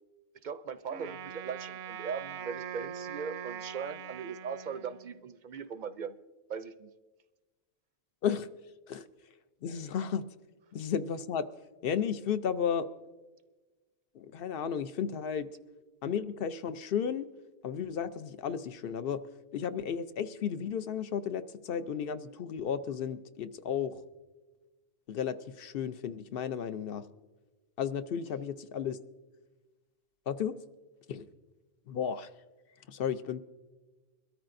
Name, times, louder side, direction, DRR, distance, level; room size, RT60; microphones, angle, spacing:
voice 1, 0.4-6.1 6.5-6.9, right 6 dB, 55° right, 12 dB, 0.6 m, -39 dB
Wind instrument woodwind instrument, 0.9-5.3, right 9 dB, 85° right, 0.8 m, -42 dB
voice 2, 9.6-10.2 10.7-11.4 11.8-12.9 14.2-15.5 16.0-17.3 17.6-19.2 19.5-24.0 25.1-27.0 27.8-29.0 30.3-30.5 31.1-31.3 31.9-32.3 32.9-33.4, left 7 dB, 65° left, 12 dB, 0.8 m, -33 dB
22.5 x 13.5 x 2.6 m, 1.2 s
omnidirectional pair, 1.1 m